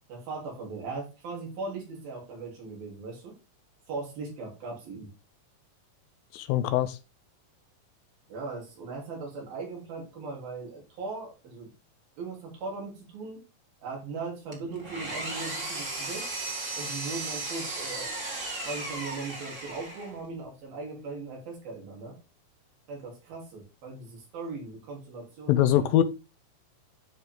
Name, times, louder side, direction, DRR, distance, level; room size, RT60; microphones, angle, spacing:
voice 1, 0.1-3.4 3.9-5.1 8.3-11.7 12.2-13.4 13.8-16.3 16.7-18.2 18.7-22.2 22.9-26.0, right 3 dB, 85° right, 5.2 m, -39 dB
voice 2, 6.5-6.9 25.5-26.0, left 12 dB, 85° left, 2.4 m, -22 dB
Engine, 14.5-20.2, right 2 dB, 30° right, 1.7 m, -35 dB
11.5 x 5.5 x 3.7 m
omnidirectional pair, 4.1 m